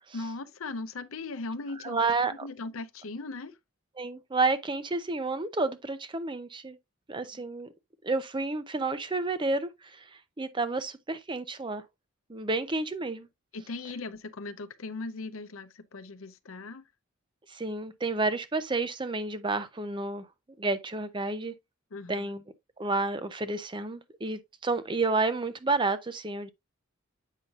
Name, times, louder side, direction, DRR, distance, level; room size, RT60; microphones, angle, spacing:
voice 1, 0.1-3.6 7.3-7.4 13.5-16.8 21.9-22.3, left 3 dB, 75° left, 0.7 m, -39 dB
voice 2, 1.8-2.5 4.0-6.8 7.1-7.7 8.0-10.1 10.4-11.8 12.3-13.3 17.5-20.3 20.6-21.5 22.1-22.4 22.8-26.5, right 3 dB, 25° right, 0.6 m, -30 dB
8.2 x 5.6 x 2.4 m
head